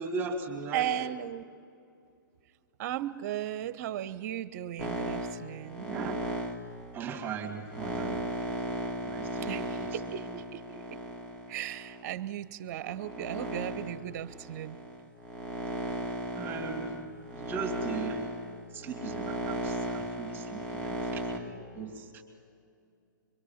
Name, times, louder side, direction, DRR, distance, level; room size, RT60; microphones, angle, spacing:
voice 1, 0.0-1.1 5.8-6.2 6.9-8.2 9.1-10.0 16.4-17.0 17.3-18.2 18.7-22.2, right 4 dB, 20° right, 3 dB, 2.4 m, -38 dB
voice 2, 0.7-1.4 2.8-5.9 9.4-11.0 11.5-14.8 20.8-21.0, right 12 dB, 50° right, 15 dB, 0.9 m, -36 dB
sound 1, 4.8-12.2 12.8-21.4, right 1 dB, 10° left, 2.1 m, -36 dB
24.5 x 24.0 x 5.8 m, 2.4 s
hypercardioid pair, 120°, 11 cm